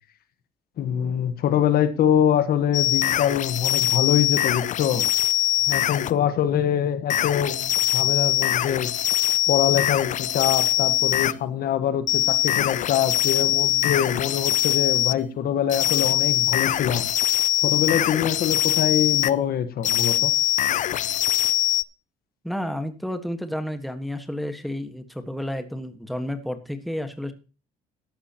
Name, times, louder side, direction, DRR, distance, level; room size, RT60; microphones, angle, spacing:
voice 1, 0.8-5.1 5.7-9.2 9.5-17.1 17.6-20.3, left 9 dB, 65° left, 11 dB, 1.4 m, -24 dB
sound 1, 2.7-6.1 7.1-11.4 12.1-15.2 15.7-19.3 19.8-21.8, left 12 dB, 50° left, 0.5 m, -22 dB
voice 2, 22.4-27.3, left 1 dB, ahead, 8 dB, 1.5 m, -31 dB
14.0 x 11.0 x 3.0 m, 0.33 s
cardioid pair, 110°, 17 cm